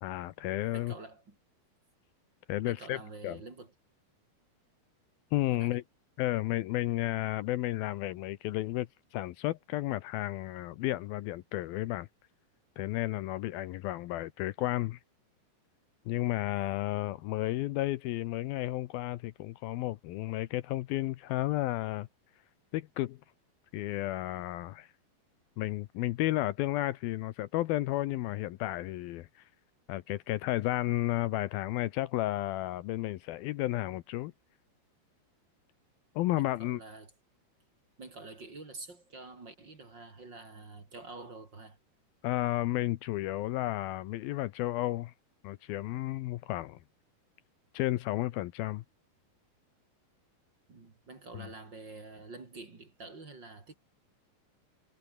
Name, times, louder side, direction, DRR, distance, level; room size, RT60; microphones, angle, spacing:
voice 1, 0.0-0.9 2.5-3.0 3.2-3.4 5.3-5.8 6.2-12.1 12.8-15.0 16.1-22.1 22.7-23.2 23.7-24.9 25.6-29.4 29.9-34.3 36.2-36.8 42.2-45.1 45.4-46.8 47.7-48.8 51.4-51.5, left 16 dB, 75° left, 2.5 m, -32 dB
voice 2, 0.7-1.4 2.6-3.7 5.5-5.8 16.5-16.7 36.4-37.1 38.0-41.8 50.7-53.7, right 3 dB, 30° right, 3.7 m, -47 dB
omnidirectional pair, 4.5 m